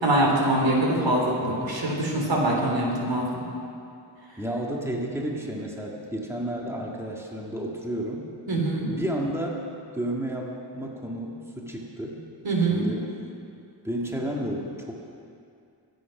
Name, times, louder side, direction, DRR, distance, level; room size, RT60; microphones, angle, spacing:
voice 1, 0.0-3.4 8.5-8.9 12.4-12.9, right 1 dB, 85° right, -2 dB, 3.8 m, -24 dB
voice 2, 4.4-8.3 8.8-9.7 9.9-12.2 12.7-13.1 13.8-15.0, right 1 dB, 5° right, -1 dB, 1.7 m, -31 dB
22.5 x 9.4 x 6.0 m, 2.5 s
wide cardioid pair, 135°, 44 cm